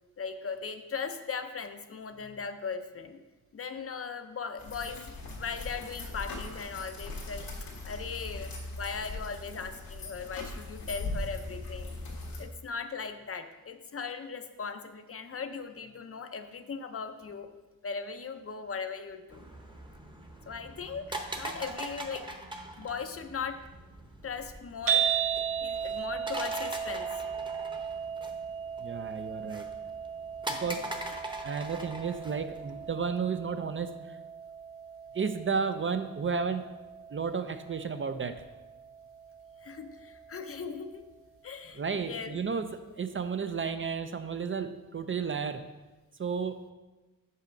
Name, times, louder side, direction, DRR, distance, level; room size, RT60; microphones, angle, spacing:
voice 1, 0.2-3.2 3.5-7.5 7.8-12.0 12.4-17.5 17.8-19.4 20.5-22.3 22.8-23.6 24.2-25.1 25.6-27.2 30.5-30.6 39.6-41.0 41.4-42.4, left 5 dB, 40° left, 8 dB, 0.6 m, -38 dB
sound 1, 4.6-12.4, left 2 dB, 90° left, 1.5 m, -39 dB
sound 2, 19.3-32.9, right 1 dB, 15° right, 0.9 m, -42 dB
sound 3, 24.9-41.1, right 8 dB, 65° right, 1.0 m, -36 dB
voice 2, 28.8-29.7 30.6-30.9 31.4-34.2 35.1-36.7 37.1-38.4 41.7-45.6 46.2-46.6, right 5 dB, 35° right, 9 dB, 0.5 m, -32 dB
5.9 x 5.6 x 5.1 m, 1.1 s
wide cardioid pair, 95°, 34 cm